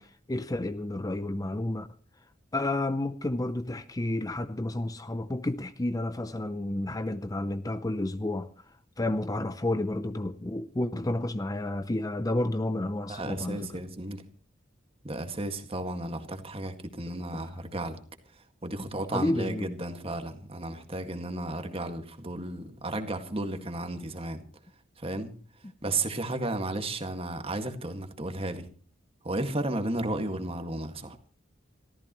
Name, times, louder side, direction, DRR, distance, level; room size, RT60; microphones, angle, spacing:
voice 1, 0.0-1.9 2.5-8.5 9.0-13.8 17.3-17.5 19.1-19.7, left 1 dB, 20° left, 0.6 m, -31 dB
voice 2, 13.1-14.2 15.0-18.0 18.6-24.4 25.0-25.3 25.8-28.7 29.2-31.2, right 2 dB, 30° right, 1.9 m, -33 dB
26.0 x 14.0 x 3.1 m
head